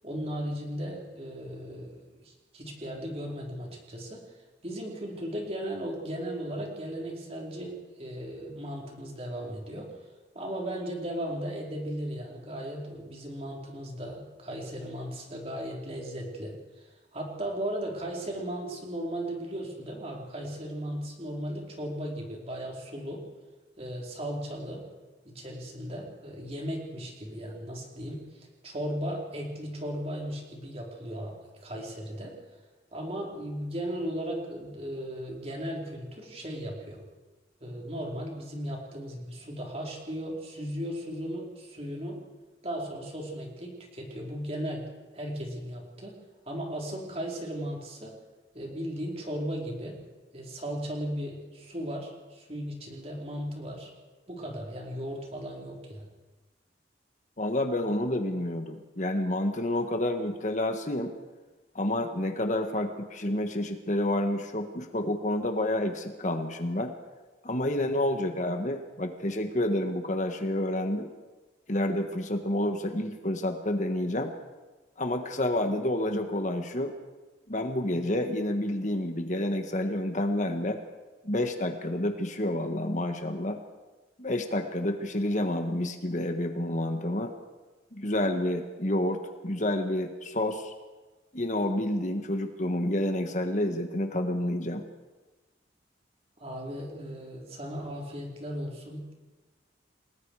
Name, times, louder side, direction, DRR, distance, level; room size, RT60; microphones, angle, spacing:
voice 1, 0.0-4.2 4.6-9.9 10.3-23.2 23.8-24.8 25.2-32.3 32.9-37.0 37.6-42.2 42.6-44.8 45.1-46.2 46.5-48.1 48.5-50.0 50.3-53.9 54.3-56.1 96.4-99.1, equal, 35° right, -1 dB, 4.7 m, -36 dB
voice 2, 57.4-61.1 61.7-66.9 67.4-71.1 71.7-74.3 75.0-76.9 77.5-80.8 81.2-83.6 84.2-87.3 87.9-90.7 91.3-94.8, left 1 dB, 40° left, 6 dB, 1.5 m, -29 dB
29.5 x 19.0 x 4.9 m, 1.2 s
head